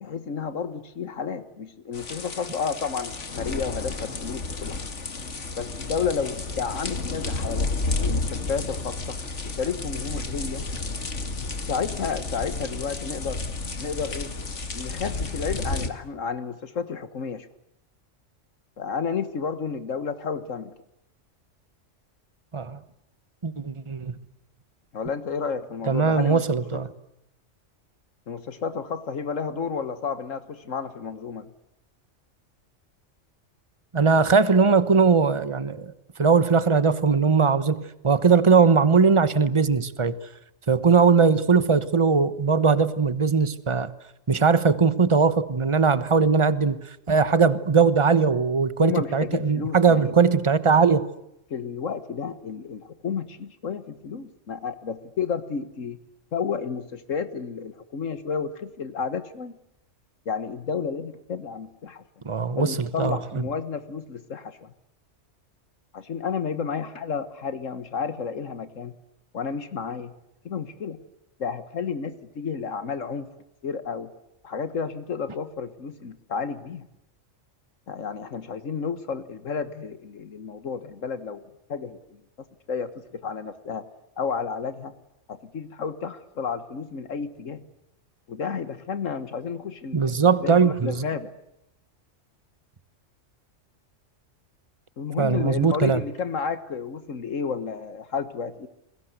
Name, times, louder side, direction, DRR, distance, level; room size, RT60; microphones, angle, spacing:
voice 1, 0.0-4.9 5.6-7.7 8.0-10.7 11.7-13.4 13.8-14.3 14.7-17.5 18.8-20.7 24.9-26.4 26.7-26.8 28.3-31.5 48.8-50.1 51.5-56.0 56.3-59.5 60.3-62.0 62.6-64.7 65.9-69.0 69.3-70.1 70.5-71.0 71.4-73.3 73.6-74.1 74.4-76.9 77.9-81.4 81.7-82.2 82.7-83.9 84.2-84.9 85.3-87.6 88.3-91.3 95.0-98.7, left 6 dB, 85° left, 11 dB, 1.8 m, -31 dB
sound 1, 1.9-15.9, left 3 dB, 70° left, 2.4 m, -31 dB
voice 2, 23.4-24.2 25.9-26.9 33.9-35.9 36.2-40.2 40.7-43.9 44.3-46.8 47.1-51.1 62.2-63.4 89.9-91.0 95.2-96.0, right 5 dB, 25° right, 14 dB, 1.2 m, -20 dB
30.0 x 22.0 x 8.1 m, 0.82 s
omnidirectional pair, 1.3 m